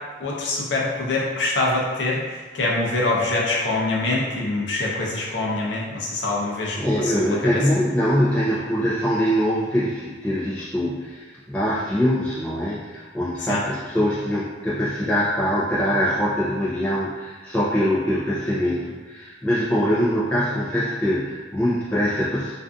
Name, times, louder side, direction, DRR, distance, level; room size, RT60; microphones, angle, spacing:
voice 1, 0.2-2.2 2.5-7.6 13.5-13.6, left 2 dB, 75° left, -3 dB, 0.6 m, -24 dB
voice 2, 6.8-22.5, equal, 5° left, -11 dB, 0.4 m, -23 dB
2.5 x 2.4 x 2.3 m, 1.4 s
head